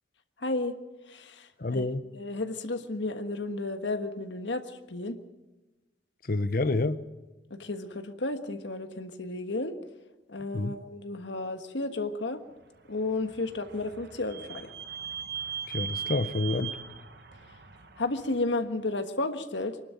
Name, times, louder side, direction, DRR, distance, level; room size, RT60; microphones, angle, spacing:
voice 1, 0.4-0.7 1.1-1.8 2.1-5.2 7.5-9.8 10.3-12.4 12.9-14.7 18.0-19.8, left 2 dB, 80° left, 1.5 m, -32 dB
voice 2, 1.6-2.0 6.2-7.0 10.5-10.7 15.7-16.8, left 2 dB, 50° left, 0.8 m, -28 dB
Vehicle / Squeak, 12.9-18.5, right 8 dB, 60° right, 1.4 m, -39 dB
24.0 x 12.0 x 9.2 m
head